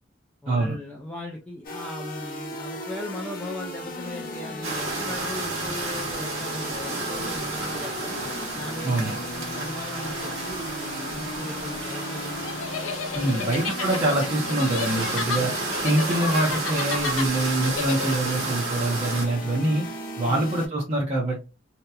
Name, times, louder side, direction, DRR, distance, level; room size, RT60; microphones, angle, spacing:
voice 1, 0.4-8.1 8.5-12.4 13.1-13.8 15.3-15.5 20.2-20.5, left 1 dB, 5° left, -2 dB, 0.3 m, -38 dB
sound 1, 1.6-20.7, left 1 dB, 45° left, 0.6 m, -37 dB
sound 2, 4.6-19.3, right 3 dB, 90° right, 1.0 m, -32 dB
voice 2, 8.8-9.2 13.1-15.5 15.8-19.9 20.2-21.4, right 1 dB, 30° right, -5 dB, 0.6 m, -25 dB
sound 3, 12.4-18.4, left 5 dB, 85° left, 0.5 m, -32 dB
2.8 x 2.1 x 2.3 m, 0.30 s
head